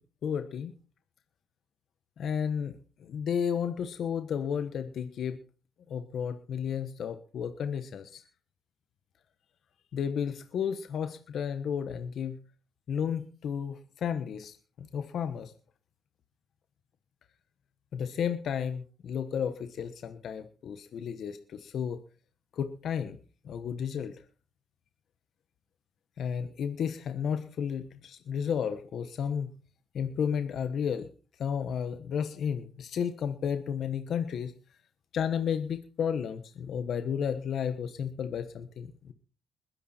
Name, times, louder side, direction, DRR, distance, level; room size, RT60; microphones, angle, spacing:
voice 1, 0.2-0.7 2.2-5.4 5.9-8.2 9.9-12.4 12.9-15.5 17.9-22.0 22.5-23.2 23.4-24.2 26.2-29.5 29.9-31.1 31.4-34.5 35.1-39.1, left 7 dB, 65° left, 9 dB, 1.3 m, -32 dB
21.0 x 10.0 x 4.5 m, 0.38 s
cardioid pair, 90°, 0 cm